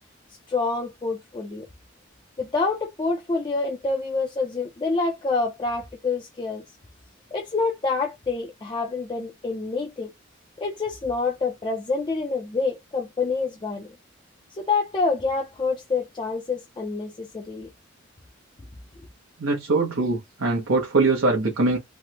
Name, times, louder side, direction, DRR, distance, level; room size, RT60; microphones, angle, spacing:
voice 1, 0.5-1.7 2.4-6.6 7.3-10.1 10.6-13.9 14.5-17.7, left 3 dB, 25° left, 0.5 m, -27 dB
voice 2, 19.4-21.8, right 3 dB, 85° right, 0.9 m, -22 dB
3.3 x 2.1 x 2.8 m
head